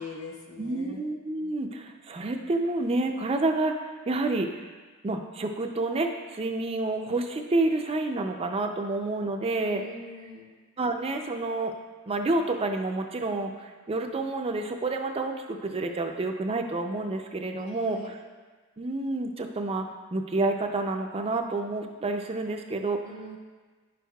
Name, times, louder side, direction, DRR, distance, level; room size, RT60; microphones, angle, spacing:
voice 1, 0.0-1.0 9.6-10.5 17.6-18.1 23.0-23.4, left 3 dB, 70° left, -2 dB, 1.2 m, -42 dB
voice 2, 0.6-4.5 5.0-9.8 10.8-11.7 12.1-18.1 18.8-23.0, right 2 dB, 25° right, 3 dB, 0.4 m, -29 dB
10.5 x 6.2 x 2.3 m, 1.4 s
head